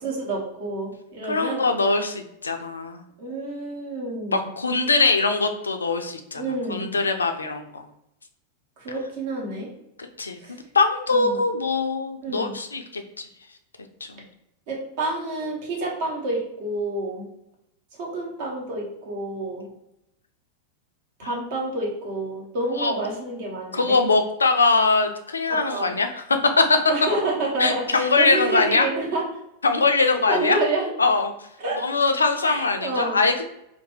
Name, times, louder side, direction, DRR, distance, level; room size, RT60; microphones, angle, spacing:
voice 1, 0.0-1.6 3.2-4.5 6.3-6.9 8.8-9.7 10.4-10.6 11.1-11.4 12.2-12.6 14.7-17.3 18.0-19.7 21.2-24.0 25.5-25.9 26.9-29.2 30.0-30.9 31.6-31.8 32.4-33.2, right 2 dB, 50° right, -3 dB, 1.1 m, -29 dB
voice 2, 1.3-3.0 4.3-6.4 6.7-7.9 10.2-10.4 10.7-13.2 14.2-14.3 22.8-23.0 23.7-26.2 26.6-26.8 27.6-28.9 29.6-30.6 31.0-31.3 31.8-33.4, left 3 dB, 75° left, 6 dB, 0.4 m, -22 dB
2.6 x 2.6 x 3.8 m, 0.81 s
figure-of-eight pair, 90°, 0 cm